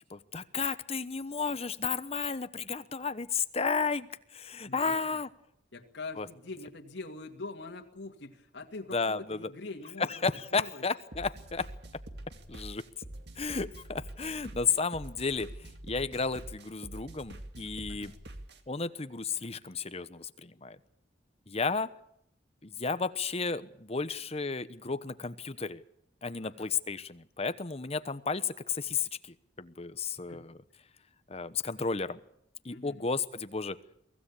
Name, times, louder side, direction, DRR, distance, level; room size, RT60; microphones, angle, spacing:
voice 1, 0.1-4.1 4.3-5.3 6.2-6.3 8.9-9.4 10.2-11.7 12.5-12.8 13.4-15.5 15.9-18.1 18.7-20.8 21.5-21.9 22.6-25.8 26.2-29.1 29.6-30.6 31.3-32.2 32.6-33.8, left 5 dB, 35° left, 13 dB, 1.0 m, -33 dB
voice 2, 4.7-5.2 5.7-10.1 10.5-10.8 17.9-18.2 26.4-26.7 30.3-30.5 32.7-33.1, left 3 dB, 90° left, 2 dB, 2.3 m, -43 dB
sound 1, 11.1-18.6, right 1 dB, 65° right, 2.3 m, -45 dB
23.5 x 16.0 x 8.5 m, 0.74 s
head